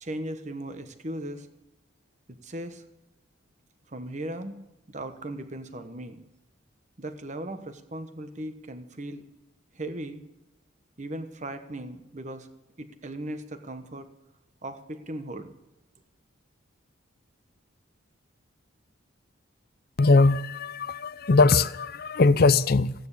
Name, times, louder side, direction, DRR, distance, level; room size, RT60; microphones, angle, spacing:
voice 1, 0.0-1.5 2.3-2.8 3.9-4.6 4.9-6.2 7.0-9.2 9.7-10.2 11.0-12.5 12.8-14.1 14.6-15.5, right 1 dB, 35° right, 1.1 m, -37 dB
voice 2, 20.0-22.9, left 3 dB, 45° left, 0.5 m, -20 dB
15.5 x 9.5 x 8.2 m
head